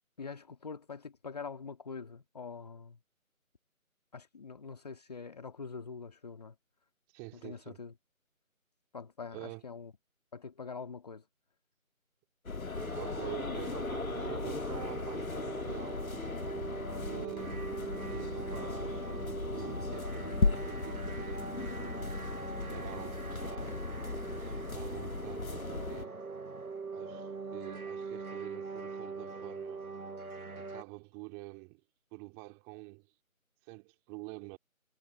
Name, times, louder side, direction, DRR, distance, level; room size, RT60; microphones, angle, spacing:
voice 1, 0.2-3.0 4.1-6.6 7.3-7.9 8.9-9.9 10.3-11.2, left 5 dB, 30° left, 2.1 m, -44 dB
voice 2, 7.1-7.8 9.3-9.6 13.0-16.0 16.9-22.1 22.7-23.8 24.4-26.2 26.9-29.9 30.5-31.8 32.1-33.1 33.6-34.6, right 30 dB, 5° right, 2.7 m, -47 dB
sound 1, 12.5-26.1, left 3 dB, 75° left, 1.5 m, -37 dB
sound 2, 12.7-30.8, right 4 dB, 90° right, 1.3 m, -42 dB
figure-of-eight pair, 165°, 42 cm